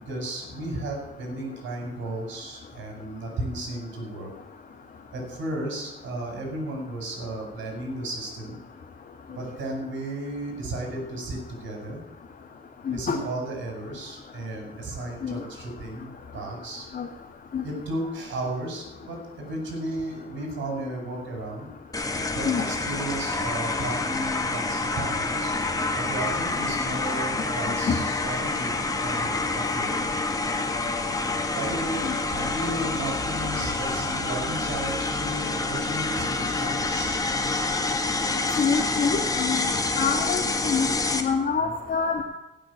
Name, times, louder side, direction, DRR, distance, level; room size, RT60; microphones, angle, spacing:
voice 1, 0.0-4.3 5.1-8.6 9.3-12.0 12.9-16.9 17.6-21.7 22.3-25.6 25.9-30.0 31.6-37.2 41.6-41.7, right 1 dB, 70° right, 1 dB, 5.2 m, -34 dB
voice 2, 12.9-13.2 15.2-15.4 16.9-17.1 17.5-17.6 22.5-22.6 27.9-28.0 32.0-32.1 38.6-39.7 40.0-42.2, left 5 dB, 45° left, 0 dB, 1.7 m, -26 dB
sound 1, 21.9-41.2, left 3 dB, 20° left, 1.6 m, -27 dB
17.0 x 6.2 x 8.1 m, 0.98 s
cardioid pair, 90°, 20 cm